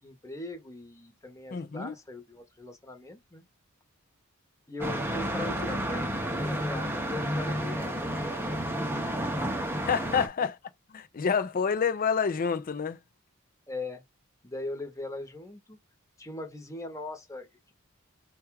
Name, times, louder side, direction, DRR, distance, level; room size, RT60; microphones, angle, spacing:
voice 1, 0.0-3.5 4.7-9.4 13.7-14.0 14.4-15.8 16.2-17.7, left 2 dB, 15° left, 1.1 m, -40 dB
voice 2, 1.5-1.9 9.8-10.5 10.9-13.0, left 6 dB, 40° left, 0.4 m, -28 dB
sound 1, 4.8-10.3, equal, 10° right, 0.7 m, -31 dB
4.6 x 2.3 x 4.6 m
head